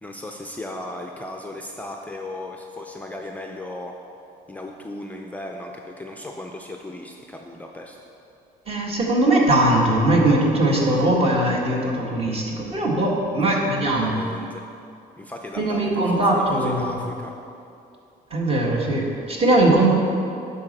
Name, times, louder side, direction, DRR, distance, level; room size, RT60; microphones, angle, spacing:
voice 1, 0.0-4.0 4.5-8.0 13.3-14.6 15.2-17.3, left 1 dB, 10° left, 1 dB, 0.5 m, -36 dB
voice 2, 8.7-14.1 15.6-17.0 18.3-19.9, right 1 dB, 35° right, -2 dB, 1.7 m, -20 dB
9.7 x 4.1 x 6.6 m, 2.6 s
cardioid pair, 110°, 17 cm